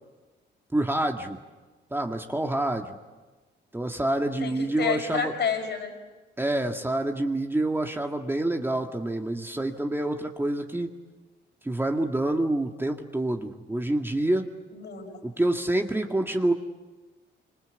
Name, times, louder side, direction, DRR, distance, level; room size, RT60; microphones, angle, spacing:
voice 1, 0.7-1.4 1.9-3.0 3.7-5.3 6.4-10.9 11.6-14.5 15.2-16.5, right 1 dB, 10° right, 3 dB, 1.9 m, -27 dB
voice 2, 4.4-5.9 14.7-15.2, left 6 dB, 60° left, 4 dB, 5.4 m, -29 dB
28.0 x 25.5 x 8.2 m, 1.2 s
cardioid pair, 90°, 20 cm